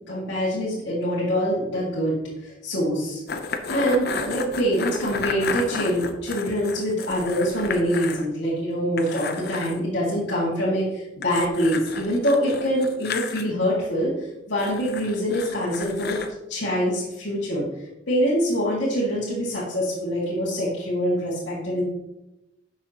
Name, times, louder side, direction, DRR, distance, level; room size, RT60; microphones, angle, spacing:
voice 1, 0.1-3.2 3.7-14.1 14.5-16.2 16.5-17.6 18.1-21.8, equal, 75° left, -7 dB, 2.0 m, -24 dB
sound 1, 3.3-8.2 8.5-8.6 9.0-9.8 11.2-13.4 14.6-16.3, left 5 dB, 55° left, 0.7 m, -32 dB
10.5 x 6.2 x 2.9 m, 0.95 s
head